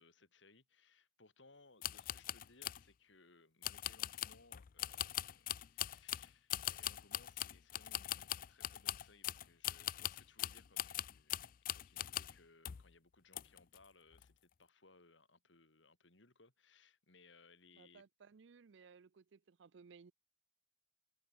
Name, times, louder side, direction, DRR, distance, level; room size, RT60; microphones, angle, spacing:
voice 1, 0.0-18.0, left 3 dB, 70° left, 3.2 m, -66 dB
sound 1, 1.8-2.8 3.6-12.4 12.6-12.9 13.3-13.8 14.1-14.3, left 13 dB, 45° left, 0.4 m, -42 dB
voice 2, 17.7-20.1, right 5 dB, 65° right, 0.5 m, -61 dB
head